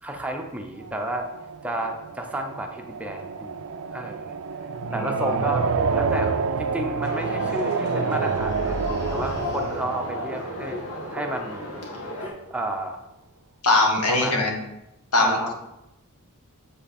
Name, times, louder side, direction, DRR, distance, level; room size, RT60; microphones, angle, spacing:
voice 1, 0.0-1.3 1.6-3.5 3.9-4.3 4.9-5.7 5.9-8.8 9.1-10.8 11.1-11.7 12.5-13.0 14.1-14.4 15.2-15.5, right 1 dB, 5° right, 3 dB, 0.7 m, -31 dB
sound 1, 0.8-11.6, right 5 dB, 65° right, 0.4 m, -29 dB
voice 2, 4.8-5.2 13.6-14.5 15.1-15.4, left 2 dB, 85° left, 2 dB, 1.5 m, -21 dB
sound 2, 6.1-6.4 8.1-10.1, right 1 dB, 15° left, 2.1 m, -36 dB
sound 3, 7.0-12.3, left 2 dB, 70° left, 2.0 m, -34 dB
7.3 x 5.6 x 4.3 m, 0.90 s
head